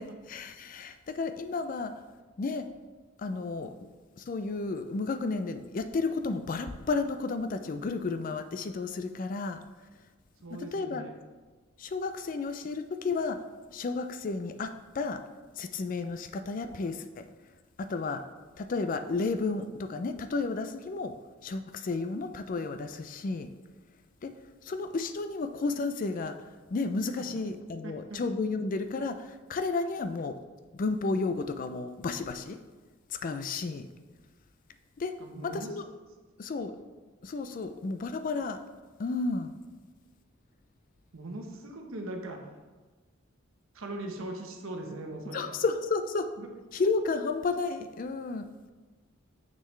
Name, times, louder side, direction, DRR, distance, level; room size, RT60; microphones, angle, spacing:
voice 1, 0.0-1.9 2.4-2.7 3.2-3.7 4.2-9.6 10.5-11.0 11.8-13.4 13.7-15.2 15.6-17.3 17.8-18.2 18.6-21.1 21.4-23.5 24.2-24.3 24.6-26.4 26.7-30.4 30.7-32.6 33.1-33.9 35.0-35.1 35.4-35.8 36.4-36.7 37.2-38.6 39.0-39.5 45.3-46.3 46.7-48.7, left 3 dB, 40° left, 9 dB, 0.4 m, -32 dB
voice 2, 10.4-11.1 27.4-27.5 27.8-28.2 35.2-35.7 41.1-42.7 43.7-45.5 46.4-46.5, right 1 dB, 75° right, 3 dB, 1.0 m, -40 dB
6.7 x 6.3 x 3.2 m, 1.3 s
head